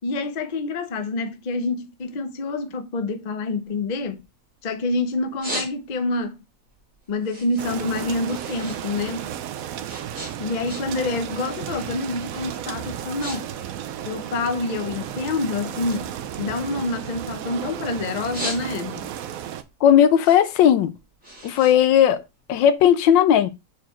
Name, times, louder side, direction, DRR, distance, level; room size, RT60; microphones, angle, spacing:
voice 1, 0.0-4.2 4.6-6.4 7.1-9.3 10.4-13.5 14.1-16.1 16.4-19.1, left 3 dB, 65° left, 0.4 m, -27 dB
Various Sniffing Sounds, 3.7-4.8 5.1-6.2 6.6-8.8 9.1-11.1 11.4-11.8 12.4-12.5 12.9-13.4 13.6-14.9 15.4-17.7 18.1-19.1 19.5-22.7, right 1 dB, 10° right, 2.3 m, -37 dB
sound 1, 7.6-19.6, right 10 dB, 70° right, 0.8 m, -33 dB
voice 2, 19.8-20.9 21.4-22.2 22.5-23.5, left 10 dB, 80° left, 1.3 m, -16 dB
4.9 x 4.6 x 4.4 m
omnidirectional pair, 2.0 m